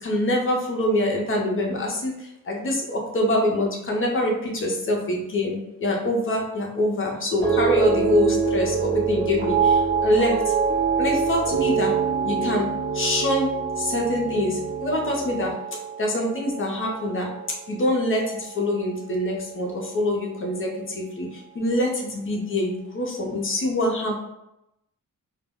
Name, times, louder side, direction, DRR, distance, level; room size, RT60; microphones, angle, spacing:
voice 1, 0.0-10.5 11.0-12.0 12.2-12.7 12.9-13.5 13.8-17.3 17.7-24.2, left 1 dB, 40° left, 0 dB, 0.5 m, -25 dB
sound 1, 7.4-17.8 18.1-18.6, right 5 dB, 35° right, 0.8 m, -25 dB
2.2 x 2.0 x 3.5 m, 0.86 s
wide cardioid pair, 175°, 34 cm